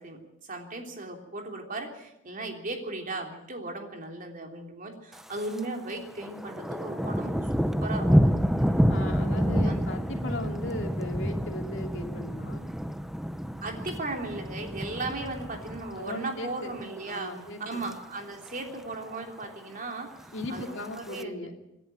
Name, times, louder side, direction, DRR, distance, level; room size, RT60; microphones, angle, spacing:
voice 1, 0.0-8.3 9.6-9.8 13.6-17.3 17.6-21.3, right 2 dB, 45° right, 2 dB, 3.3 m, -37 dB
Thunder, 5.1-5.7 6.0-16.3 16.7-17.0 17.5-17.9 18.2-18.3 18.5-18.6 18.9-19.5 20.3-21.2, equal, ahead, 0.7 m, -28 dB
voice 2, 8.9-12.7 16.0-16.7 17.1-17.8 20.3-21.5, left 1 dB, 65° left, 3 dB, 2.8 m, -37 dB
27.0 x 11.0 x 9.0 m, 0.89 s
head